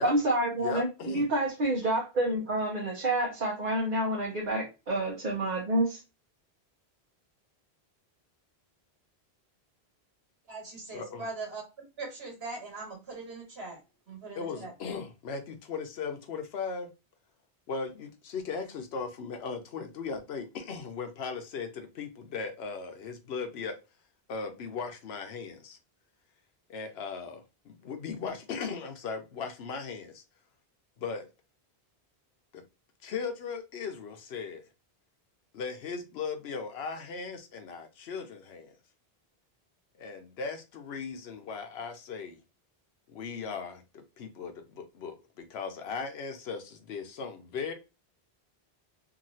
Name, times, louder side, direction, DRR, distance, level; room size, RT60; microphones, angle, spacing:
voice 1, 0.0-6.0, right 1 dB, 50° right, -3 dB, 1.0 m, -28 dB
voice 2, 0.6-1.3 10.9-11.3 14.3-16.9 17.7-23.8 24.3-25.8 26.7-30.2 31.0-31.3 32.5-32.6 33.0-34.6 35.5-38.7 40.0-42.4 43.1-47.7, left 5 dB, 80° left, 6 dB, 0.9 m, -38 dB
voice 3, 10.5-11.6 12.0-13.8 14.1-14.7, right 3 dB, 70° right, 0 dB, 1.6 m, -40 dB
2.9 x 2.7 x 2.6 m, 0.27 s
omnidirectional pair, 1.1 m